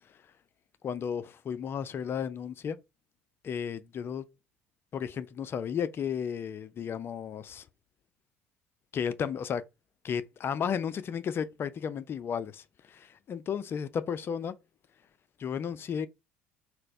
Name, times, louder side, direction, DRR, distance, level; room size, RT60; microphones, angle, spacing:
voice 1, 0.8-2.8 3.4-4.2 4.9-7.7 8.9-9.6 10.0-14.6 15.4-16.1, left 7 dB, 35° left, 0.4 m, -33 dB
3.9 x 2.0 x 2.6 m
figure-of-eight pair, 65°, 7 cm